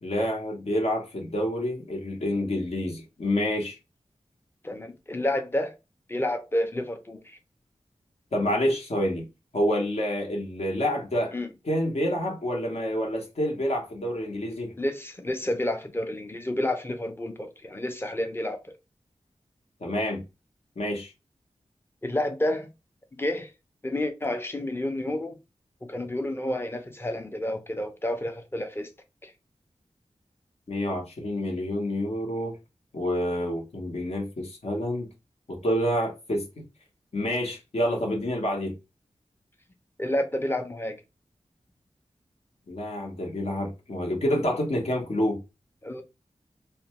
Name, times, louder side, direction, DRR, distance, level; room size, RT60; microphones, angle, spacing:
voice 1, 0.0-3.8 8.3-9.3 9.5-11.3 11.6-14.7 19.8-20.2 20.8-21.1 30.7-32.6 32.9-35.1 35.5-36.4 37.1-38.7 42.7-45.4, equal, 65° left, 0.9 m, -28 dB
voice 2, 4.6-5.7 6.1-7.4 11.3-11.5 14.8-18.6 22.0-22.7 23.2-23.5 23.8-25.4 25.8-28.9 29.2-29.3 40.0-41.0 45.8-46.0, left 1 dB, 20° left, 0.6 m, -30 dB
2.5 x 2.2 x 2.9 m
wide cardioid pair, 60°, 12 cm